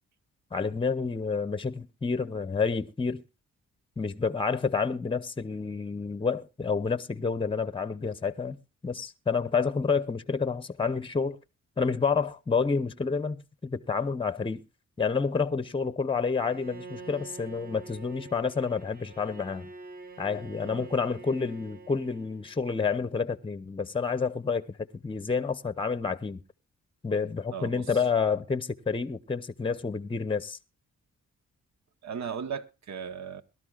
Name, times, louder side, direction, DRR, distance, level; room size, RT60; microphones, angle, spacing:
voice 1, 0.5-3.2 4.0-8.6 8.8-11.4 11.8-14.6 15.0-19.7 20.2-26.4 27.0-30.6, left 5 dB, 15° left, 0.8 m, -29 dB
Bowed string instrument, 16.4-22.6, right 3 dB, 30° right, 1.1 m, -46 dB
voice 2, 27.5-28.0 32.0-33.4, right 7 dB, 65° right, 1.1 m, -37 dB
22.0 x 12.5 x 2.4 m
cardioid pair, 85°, 30 cm